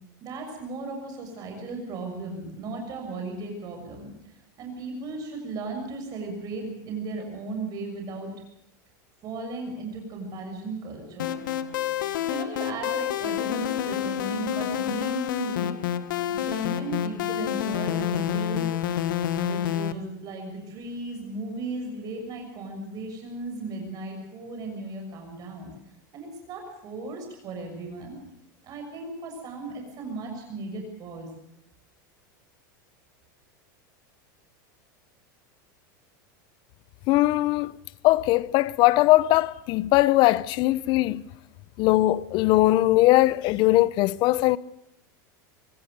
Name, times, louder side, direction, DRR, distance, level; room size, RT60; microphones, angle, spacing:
voice 1, 0.2-8.3 9.2-11.3 12.2-15.7 16.3-18.7 19.3-25.7 26.1-28.2 28.6-31.3, right 3 dB, 35° right, 6.7 m, -36 dB
sound 1, 11.2-19.9, left 10 dB, 90° left, 1.6 m, -28 dB
voice 2, 37.1-37.8 38.0-41.2 41.8-44.6, left 17 dB, 45° left, 0.8 m, -20 dB
25.0 x 16.0 x 6.8 m
supercardioid pair, 140°, 11 cm